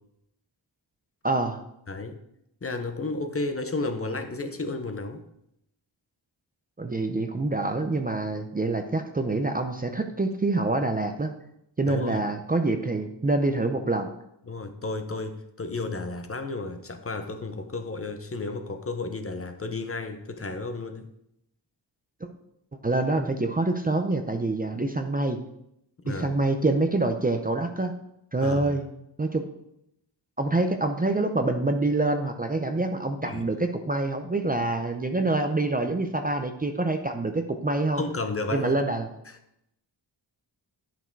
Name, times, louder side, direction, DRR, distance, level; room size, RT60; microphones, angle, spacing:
voice 1, 1.2-1.6 6.8-11.3 11.8-14.1 22.8-25.4 26.1-27.9 28.3-28.9 29.2-29.4 30.4-38.0 38.5-39.1, right 2 dB, 20° right, 5 dB, 0.6 m, -26 dB
voice 2, 1.9-2.2 2.6-5.2 11.8-12.3 14.5-21.1 26.0-26.4 28.4-28.8 33.2-33.4 38.0-38.7, left 3 dB, 30° left, 7 dB, 0.8 m, -32 dB
10.5 x 6.0 x 4.6 m, 0.78 s
wide cardioid pair, 165°, 44 cm